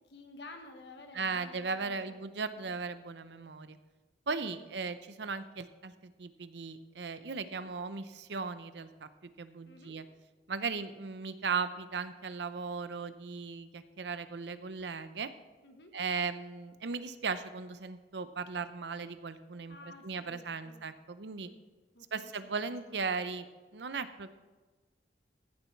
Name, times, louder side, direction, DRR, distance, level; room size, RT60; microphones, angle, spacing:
voice 1, 0.1-2.2 2.6-2.7 4.4-4.7 7.4-7.6 9.6-9.9 15.6-15.9 19.7-20.8 21.4-21.6 21.9-22.3 22.9-23.1, left 2 dB, 75° left, 4 dB, 1.6 m, -52 dB
voice 2, 1.1-3.8 4.3-9.1 9.4-10.0 10.5-15.3 15.9-19.8 20.0-21.5 22.1-23.5 23.7-24.3, right 5 dB, 80° right, 12 dB, 0.7 m, -37 dB
15.0 x 7.0 x 4.6 m, 1.3 s
head